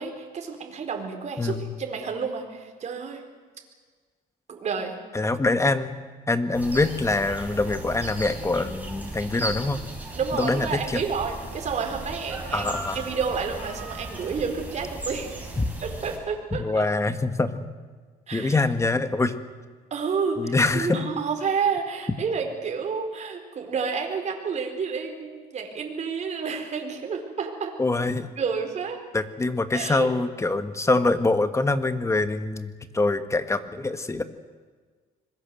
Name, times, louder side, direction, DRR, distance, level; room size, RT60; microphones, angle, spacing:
voice 1, 0.0-3.2 4.5-5.0 10.2-12.7 12.9-15.5 15.8-16.8 18.3-18.6 19.9-27.7 28.4-29.0 29.7-30.1, right 5 dB, 45° right, 3 dB, 4.5 m, -30 dB
voice 2, 1.4-1.7 5.1-6.0 6.3-9.8 10.4-11.0 12.5-13.0 15.6-15.7 16.5-17.7 18.3-19.4 20.4-21.0 27.8-28.3 29.1-34.2, left 3 dB, 15° left, 10 dB, 1.6 m, -24 dB
sound 1, 6.5-16.2, right 2 dB, 10° right, 6.0 m, -36 dB
26.0 x 21.5 x 7.8 m, 1.5 s
cardioid pair, 110°, 17 cm